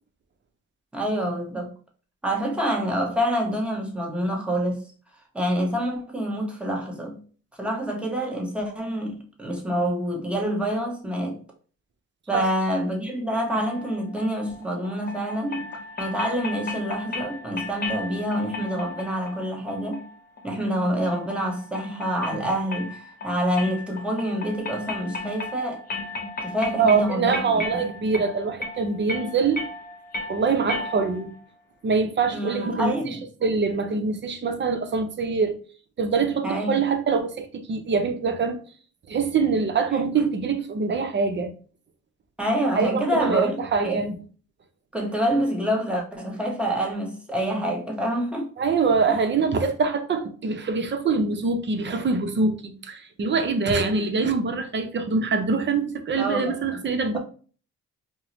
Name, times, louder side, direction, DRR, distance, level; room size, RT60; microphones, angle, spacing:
voice 1, 0.9-1.7 2.2-4.8 5.3-7.2 7.6-11.4 12.3-15.6 16.0-20.1 20.4-25.8 26.4-27.6 32.3-33.2 36.4-36.8 39.9-40.0 42.4-44.0 44.9-48.5 49.1-49.2 56.2-56.8, equal, 5° right, 1.0 m, -27 dB
sound 1, 13.5-31.4, left 2 dB, 30° left, 0.7 m, -36 dB
voice 2, 26.8-29.6 30.3-31.3 31.8-33.2 33.4-35.6 36.0-38.6 39.1-41.5 42.8-44.2 48.6-57.2, right 4 dB, 40° right, 0.6 m, -24 dB
4.4 x 2.0 x 2.9 m
cardioid pair, 90°, 30 cm